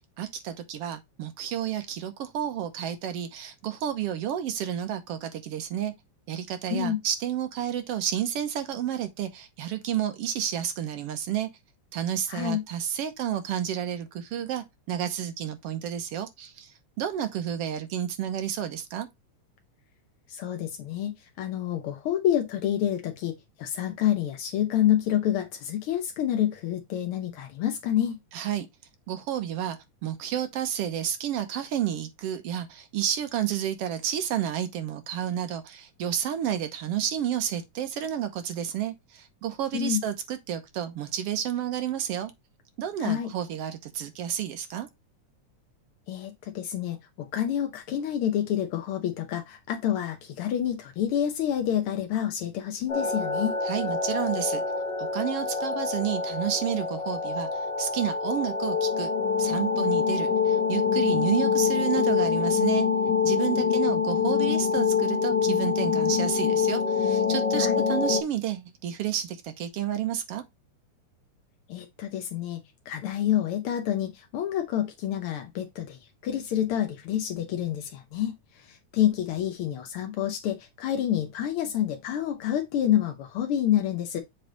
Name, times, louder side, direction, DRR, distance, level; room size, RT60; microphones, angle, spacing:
voice 1, 0.2-5.9 6.3-11.5 11.9-16.7 17.0-19.1 28.3-28.7 29.1-42.3 42.8-44.9 53.6-54.6 55.0-59.1 59.4-62.9 63.2-70.4, right 10 dB, 70° right, 1.6 m, -31 dB
voice 2, 12.3-12.6 20.3-28.2 39.7-40.0 43.0-43.3 46.1-53.6 63.6-63.8 67.6-67.8 71.7-84.2, left 11 dB, 85° left, 1.2 m, -28 dB
sound 1, 52.9-68.2, left 6 dB, 65° left, 1.0 m, -25 dB
7.9 x 3.3 x 3.8 m
omnidirectional pair, 3.5 m